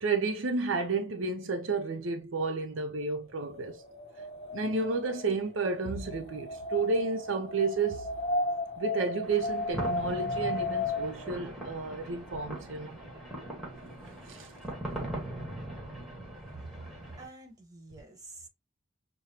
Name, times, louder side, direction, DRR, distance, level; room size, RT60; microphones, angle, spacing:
voice 1, 0.0-3.8 4.5-8.1 8.8-13.0 14.3-14.5, right 4 dB, 65° right, 0.6 m, -31 dB
Wind, 3.4-11.3, left 2 dB, 30° left, 1.1 m, -35 dB
sound 1, 9.2-17.3, right 1 dB, ahead, 1.6 m, -40 dB
voice 2, 16.5-18.5, right 2 dB, 15° right, 1.2 m, -47 dB
6.4 x 2.2 x 2.9 m
head